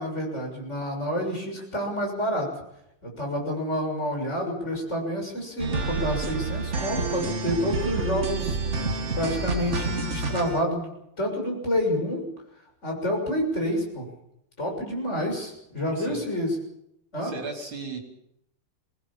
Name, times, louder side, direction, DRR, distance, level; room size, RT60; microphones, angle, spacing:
voice 1, 0.0-2.5 3.0-8.6 9.1-12.2 12.8-14.1 14.6-16.5 17.1-17.3, equal, 30° left, 1 dB, 7.0 m, -28 dB
sound 1, 5.6-10.6, right 4 dB, 35° right, 1.7 m, -29 dB
voice 2, 15.9-16.2 17.2-18.0, right 3 dB, 70° right, 3 dB, 4.7 m, -36 dB
24.0 x 20.0 x 7.2 m, 0.78 s
omnidirectional pair, 2.4 m